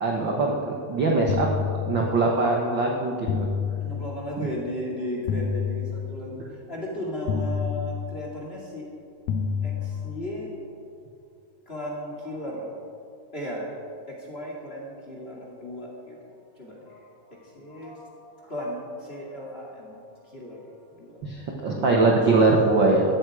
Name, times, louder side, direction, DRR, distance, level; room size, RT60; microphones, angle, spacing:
voice 1, 0.0-1.5 1.9-3.5 21.2-21.3 21.6-23.0, right 3 dB, 90° right, -1 dB, 1.0 m, -22 dB
sound 1, 1.3-2.5 3.3-4.5 5.3-6.5 7.3-8.5 9.3-10.5, left 6 dB, 80° left, 1.6 m, -29 dB
voice 2, 3.8-8.9 9.6-10.5 11.7-12.8 13.3-13.8 14.1-16.2 16.6-20.0 20.2-21.2 21.7-22.1, left 1 dB, 20° left, -2 dB, 1.9 m, -36 dB
16.0 x 12.5 x 4.9 m, 2.4 s
omnidirectional pair, 4.1 m